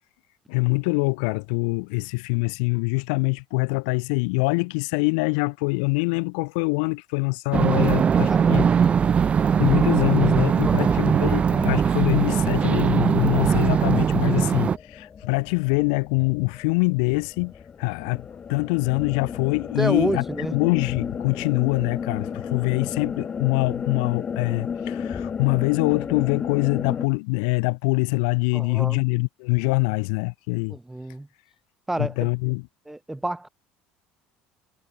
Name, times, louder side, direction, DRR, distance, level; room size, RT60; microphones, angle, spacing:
voice 1, 0.5-8.7 9.6-17.5 17.8-20.2 20.5-30.8 32.0-32.6, left 32 dB, 85° left, 4.2 m, -24 dB
sound 1, 7.5-14.8, right 7 dB, 30° right, 1.3 m, -20 dB
voice 2, 8.3-9.0 10.6-11.1 19.8-20.5 28.5-29.0 30.7-31.3 31.9-32.3 32.8-33.5, right 1 dB, 5° right, 3.6 m, -30 dB
sound 2, 9.5-27.1, left 6 dB, 30° left, 2.4 m, -35 dB
cardioid pair, 120°, 4 cm